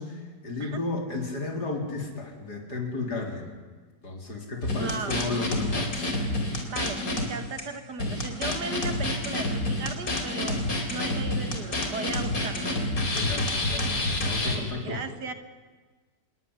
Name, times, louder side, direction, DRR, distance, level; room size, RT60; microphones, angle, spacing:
voice 1, 0.0-3.5 4.0-6.1 13.1-15.0, left 3 dB, 75° left, 2 dB, 4.6 m, -33 dB
sound 1, 4.6-7.3 7.6-7.7 8.0-14.6, left 1 dB, 60° left, 4.3 m, -28 dB
voice 2, 4.8-5.2 6.7-12.7 14.4-15.3, right 4 dB, 85° right, 8 dB, 2.5 m, -37 dB
27.0 x 21.5 x 9.8 m, 1.4 s
omnidirectional pair, 1.7 m